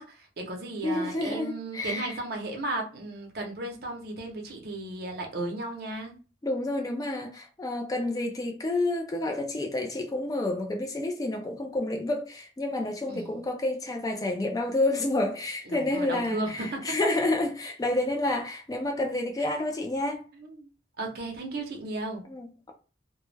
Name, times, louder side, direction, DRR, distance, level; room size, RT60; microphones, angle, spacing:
voice 1, 0.0-6.1 13.1-13.4 15.7-16.9 20.4-20.7 21.0-22.2, right 2 dB, 55° right, 0.7 m, -35 dB
voice 2, 0.8-2.2 6.4-20.2 22.3-22.7, left 2 dB, 20° left, 0.3 m, -29 dB
2.2 x 2.0 x 3.2 m
head